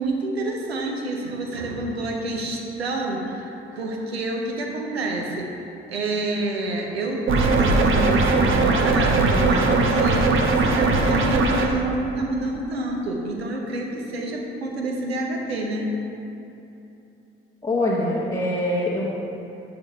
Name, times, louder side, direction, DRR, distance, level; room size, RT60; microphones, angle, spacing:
voice 1, 0.0-5.5 5.9-15.9, right 2 dB, 85° right, 0 dB, 0.8 m, -28 dB
sound 1, 7.3-11.7, right 3 dB, 40° right, 0.9 m, -19 dB
voice 2, 17.6-19.2, left 1 dB, 15° left, -6 dB, 1.2 m, -24 dB
7.9 x 5.3 x 4.4 m, 3.0 s
figure-of-eight pair, 45°, 31 cm